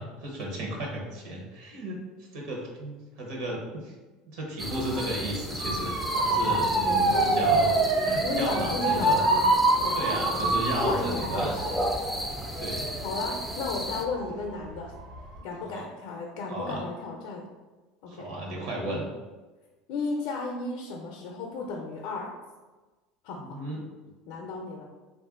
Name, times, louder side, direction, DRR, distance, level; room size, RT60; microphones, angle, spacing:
voice 1, 0.0-2.0 2.3-3.9 4.3-5.9 6.2-7.7 8.0-9.2 9.9-11.5 12.6-12.9 15.7-15.8 16.5-16.8 18.1-19.1 23.4-23.8, right 1 dB, 65° right, 0 dB, 0.8 m, -33 dB
sound 1, 4.6-14.0, equal, ahead, 0.3 m, -34 dB
Motor vehicle (road) / Siren, 5.6-14.5 14.9-15.4, right 2 dB, 85° right, 1.4 m, -26 dB
voice 2, 6.3-7.8 8.2-9.5 9.8-10.5 10.9-11.8 12.1-12.2 12.7-14.9 15.4-17.5 18.0-18.3 19.9-22.3 23.2-23.6 24.3-24.9, left 4 dB, 65° left, 0 dB, 0.5 m, -34 dB
3.1 x 2.5 x 3.5 m, 1.2 s
cardioid pair, 145°, 0 cm